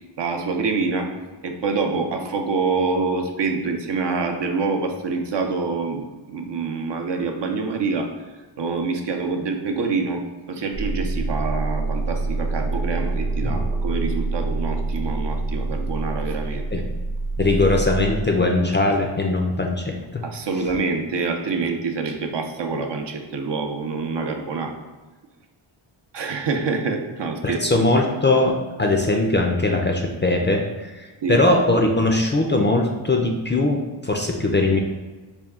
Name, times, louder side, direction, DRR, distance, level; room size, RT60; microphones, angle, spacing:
voice 1, 0.2-1.1 1.4-8.1 8.6-10.2 10.5-16.7 20.2-24.7 26.1-27.8 31.2-31.4, right 4 dB, 60° right, 4 dB, 0.6 m, -26 dB
sound 1, 10.7-18.2, right 3 dB, 90° right, 0.9 m, -26 dB
voice 2, 17.4-20.2 27.4-28.5 28.8-34.8, left 2 dB, 25° left, 2 dB, 0.4 m, -20 dB
4.3 x 2.3 x 3.5 m, 1.3 s
cardioid pair, 60°, 49 cm